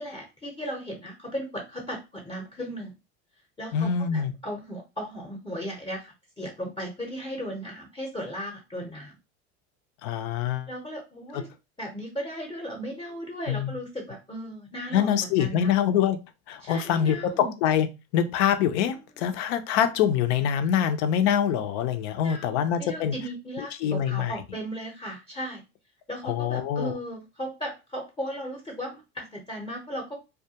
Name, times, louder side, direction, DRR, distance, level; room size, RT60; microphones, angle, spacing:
voice 1, 0.0-2.9 3.6-9.1 10.7-11.5 11.8-15.7 16.6-17.5 22.2-25.6 26.1-30.2, equal, 15° left, 0.7 m, -36 dB
voice 2, 3.7-4.3 10.0-10.7 11.3-11.4 13.5-13.7 14.9-16.2 16.5-17.9 18.1-23.1 23.6-24.3 26.2-26.9, left 9 dB, 80° left, 0.5 m, -25 dB
2.3 x 2.2 x 2.7 m
supercardioid pair, 100°, 33 cm